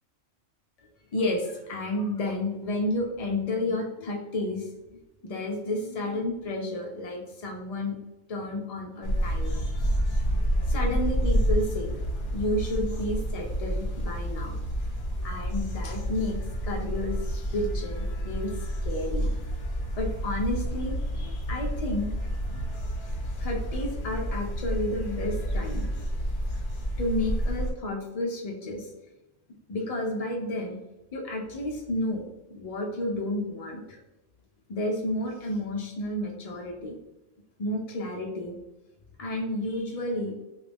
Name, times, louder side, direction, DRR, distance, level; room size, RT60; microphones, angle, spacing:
voice 1, 1.1-8.0 8.3-9.9 10.7-12.0 12.3-14.6 15.2-18.5 18.8-19.3 20.0-22.1 22.5-22.6 23.4-25.8 27.0-28.9 29.7-30.8 31.1-32.2 32.5-34.0 34.7-37.0 37.6-38.6 39.2-40.3, left 1 dB, 75° left, 0 dB, 0.3 m, -31 dB
sound 1, 9.0-27.7, equal, 50° left, 0.8 m, -29 dB
3.0 x 2.5 x 3.3 m, 0.97 s
omnidirectional pair, 1.3 m